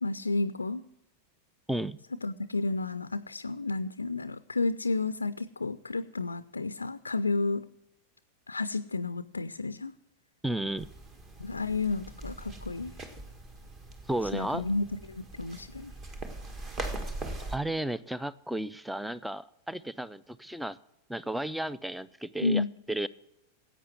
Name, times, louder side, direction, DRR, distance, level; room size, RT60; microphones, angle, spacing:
voice 1, 0.0-0.8 2.2-7.7 8.5-9.9 11.4-12.9 14.3-15.9 22.4-22.7, left 3 dB, 80° left, 14 dB, 0.4 m, -31 dB
voice 2, 10.4-10.9 14.1-14.6 17.5-20.8 21.1-23.1, right 1 dB, 5° right, 18 dB, 0.4 m, -33 dB
sound 1, 10.8-17.6, right 2 dB, 25° right, 1.6 m, -41 dB
11.0 x 8.2 x 7.7 m, 0.91 s
figure-of-eight pair, 90°, 0 cm